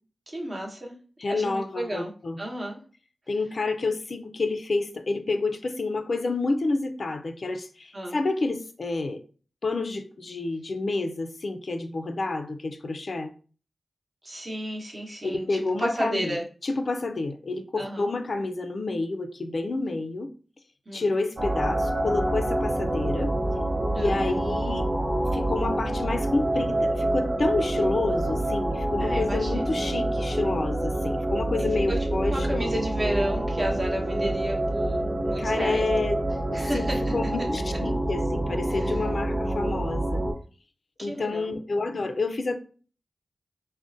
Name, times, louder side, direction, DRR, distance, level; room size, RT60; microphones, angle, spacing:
voice 1, 0.3-0.9 1.3-2.1 2.4-2.8 7.9-8.2 14.2-16.4 17.8-18.1 20.9-21.1 23.9-24.2 29.0-29.8 31.6-35.9 36.5-37.1 38.7-39.0 41.0-41.5, right 1 dB, 35° right, 0.8 m, -32 dB
voice 2, 1.2-2.4 3.3-9.2 9.6-13.3 15.2-16.4 16.6-20.3 20.9-23.3 24.0-24.9 25.3-32.7 35.4-36.2 36.5-36.8 37.1-40.2 41.0-42.6, left 3 dB, 55° left, 0.4 m, -29 dB
sound 1, 21.4-40.3, right 1 dB, 60° right, 0.9 m, -27 dB
3.6 x 2.1 x 2.5 m
wide cardioid pair, 90°, 0 cm